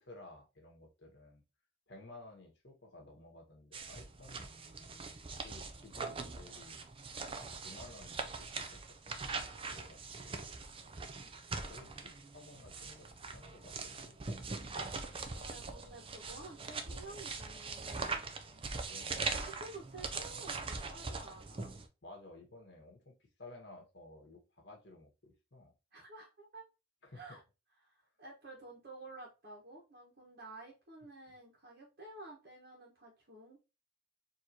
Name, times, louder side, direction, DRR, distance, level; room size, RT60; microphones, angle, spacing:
voice 1, 0.0-1.4 1.9-4.5 5.3-6.8 7.2-9.4 9.7-10.3 11.7-14.6 18.8-19.3 22.0-25.7 27.0-27.4, left 2 dB, 55° left, 1.5 m, -55 dB
sound 1, 3.7-21.9, right 4 dB, 25° right, 0.5 m, -42 dB
voice 2, 15.3-18.2 19.3-21.7 25.9-26.7 27.1-27.4 27.8-33.6, right 2 dB, 50° right, 1.4 m, -52 dB
4.5 x 3.0 x 2.9 m
head